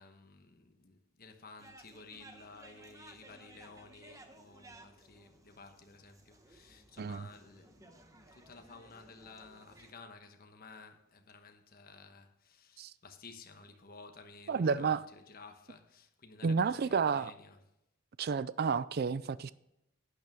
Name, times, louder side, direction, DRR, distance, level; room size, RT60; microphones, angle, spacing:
voice 1, 0.0-17.6, left 4 dB, 45° left, 1.2 m, -54 dB
sound 1, 1.6-9.9, right 2 dB, 15° right, 1.0 m, -58 dB
voice 2, 14.5-15.0 16.4-17.3 18.2-19.5, right 5 dB, 45° right, 0.4 m, -31 dB
11.5 x 9.2 x 3.6 m
head